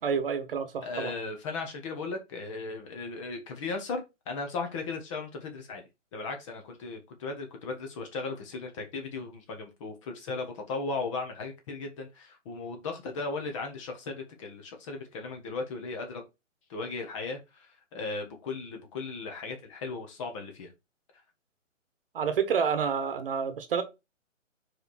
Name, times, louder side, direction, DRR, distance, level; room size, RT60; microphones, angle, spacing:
voice 1, 0.0-1.1 22.1-23.8, right 6 dB, 45° right, 1.3 m, -28 dB
voice 2, 0.8-5.8 6.1-16.2 16.7-20.7, left 3 dB, 25° left, 1.2 m, -36 dB
4.9 x 4.8 x 4.3 m
hypercardioid pair, 155°, 39 cm